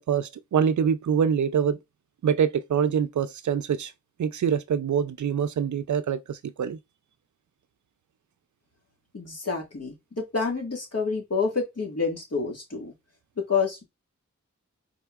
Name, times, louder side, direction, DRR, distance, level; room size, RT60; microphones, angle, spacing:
voice 1, 0.0-1.8 2.2-3.9 4.2-6.8, right 7 dB, 75° right, 0.5 m, -25 dB
voice 2, 9.1-12.9 13.5-13.8, left 5 dB, 55° left, 1.7 m, -28 dB
4.4 x 3.7 x 2.3 m
wide cardioid pair, 70°, 30 cm